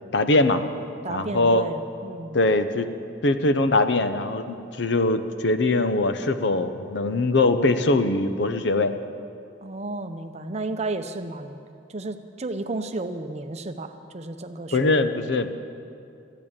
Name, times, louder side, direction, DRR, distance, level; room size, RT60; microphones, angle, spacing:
voice 1, 0.1-0.6 1.1-1.7 2.3-2.9 3.2-8.9 14.7-15.5, left 2 dB, 65° left, 10 dB, 0.7 m, -22 dB
voice 2, 1.0-2.4 9.6-11.6 11.9-15.1, right 2 dB, 35° right, 9 dB, 0.6 m, -33 dB
14.0 x 8.9 x 8.7 m, 2.5 s
head